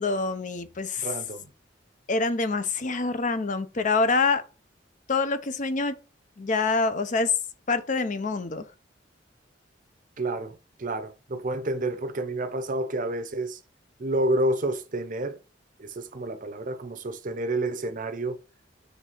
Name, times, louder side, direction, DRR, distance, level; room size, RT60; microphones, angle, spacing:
voice 1, 0.0-1.1 2.1-4.4 5.1-6.0 6.4-7.3 7.7-8.7, left 4 dB, 45° left, 0.6 m, -26 dB
voice 2, 1.0-1.5 10.2-13.6 14.0-15.4 15.8-18.4, right 1 dB, 45° right, 0.7 m, -29 dB
6.5 x 3.4 x 4.4 m
head